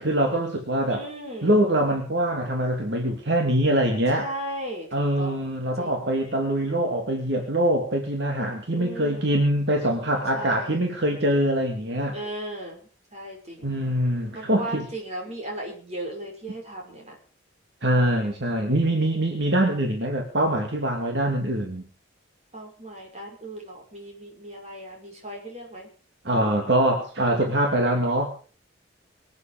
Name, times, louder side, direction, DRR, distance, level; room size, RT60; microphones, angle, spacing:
voice 1, 0.0-1.0 1.4-4.2 4.9-12.1 13.6-14.8 17.8-21.9 26.2-28.3, right 1 dB, 60° right, 2 dB, 2.7 m, -23 dB
voice 2, 0.9-1.5 4.1-4.9 5.2-5.4 5.8-6.2 8.7-9.4 10.3-10.8 12.1-13.7 14.3-17.2 18.7-19.4 22.5-25.9, right 1 dB, 35° right, 0 dB, 6.2 m, -37 dB
24.0 x 9.3 x 5.2 m, 0.40 s
head